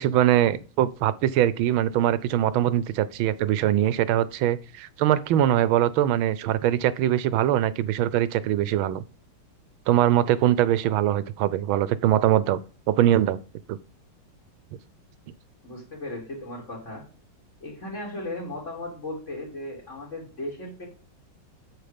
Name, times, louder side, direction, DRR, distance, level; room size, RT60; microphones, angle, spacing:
voice 1, 0.0-9.0 9.9-12.6 12.9-13.4 13.7-13.8, right 12 dB, 75° right, 1.5 m, -22 dB
voice 2, 15.6-17.0 17.6-20.9, left 1 dB, 35° left, 3.4 m, -36 dB
9.3 x 6.8 x 5.2 m
omnidirectional pair, 2.3 m